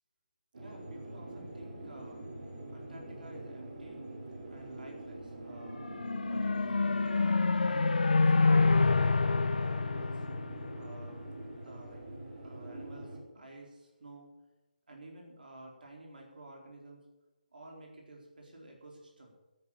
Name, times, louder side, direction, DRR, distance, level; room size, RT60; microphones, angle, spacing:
sound 1, 0.5-13.2, right 1 dB, 55° right, 3.5 m, -45 dB
voice 1, 0.6-2.2 2.7-4.1 4.5-5.8 6.3-10.2 10.7-11.2 11.4-12.0 12.4-14.3 14.9-17.0 17.5-19.4, right 2 dB, 80° right, 0 dB, 4.2 m, -51 dB
sound 2, 5.7-11.2, left 3 dB, 80° left, 0.9 m, -27 dB
10.0 x 9.4 x 9.1 m, 1.0 s
hypercardioid pair, 175°, 5 cm